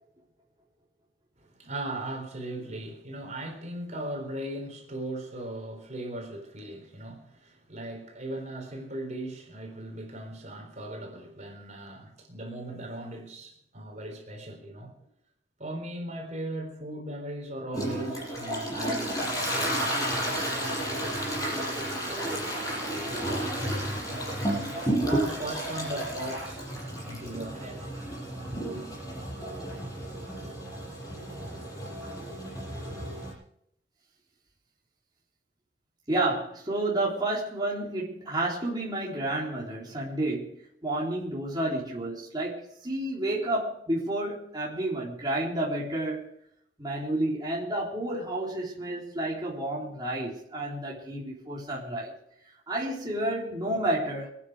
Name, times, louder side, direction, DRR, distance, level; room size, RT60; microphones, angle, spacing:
voice 1, 1.5-15.1 15.6-23.8 24.1-24.3 25.0-27.9 28.5-28.9, right 1 dB, 40° right, 4.1 m, -39 dB
Toilet flush, 17.7-33.3, right 1 dB, 20° left, 7.5 m, -32 dB
voice 2, 36.1-40.6 40.8-46.3 46.8-52.1 52.7-54.3, right 1 dB, 25° right, 3.8 m, -30 dB
25.5 x 10.0 x 5.0 m
head